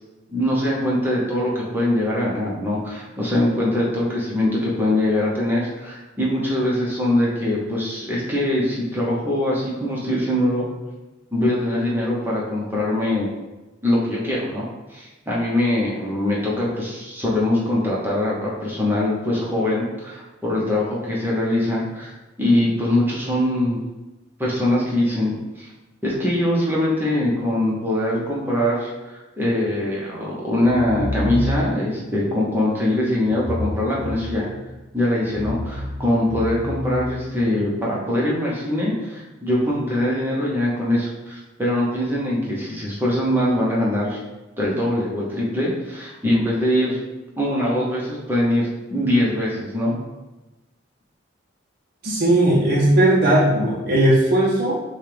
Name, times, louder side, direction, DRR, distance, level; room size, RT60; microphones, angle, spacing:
voice 1, 0.3-10.7 11.3-13.3 13.8-22.1 22.4-23.8 24.4-25.7 26.0-34.5 34.9-44.2 44.6-47.0 47.4-49.9, left 1 dB, 10° right, -5 dB, 0.9 m, -22 dB
sound 1, 30.8-31.9 33.3-34.7 35.2-37.7, left 1 dB, 15° left, 0.4 m, -29 dB
voice 2, 52.0-54.7, right 1 dB, 50° right, -4 dB, 0.7 m, -17 dB
6.3 x 2.4 x 3.4 m, 1.1 s
head